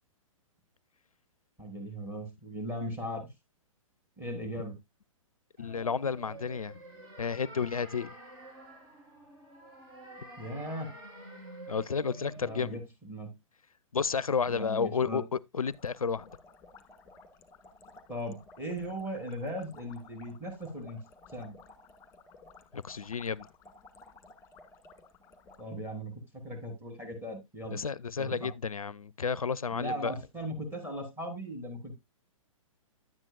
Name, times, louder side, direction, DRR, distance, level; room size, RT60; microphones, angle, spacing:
voice 1, 1.6-3.3 4.2-4.7 10.4-10.9 12.4-13.3 14.5-15.2 18.1-21.0 21.3-21.5 25.6-27.8 28.2-28.5 29.7-32.0, equal, 10° right, 3.4 m, -38 dB
voice 2, 5.6-6.8 7.2-8.1 11.7-12.8 13.9-16.3 22.7-23.5 27.7-30.1, left 5 dB, 85° left, 0.4 m, -31 dB
sound 1, 5.6-12.7, right 1 dB, 45° right, 4.0 m, -49 dB
sound 2, 15.6-25.6, left 3 dB, 15° left, 1.6 m, -55 dB
10.5 x 8.9 x 2.3 m
figure-of-eight pair, 115°, 18 cm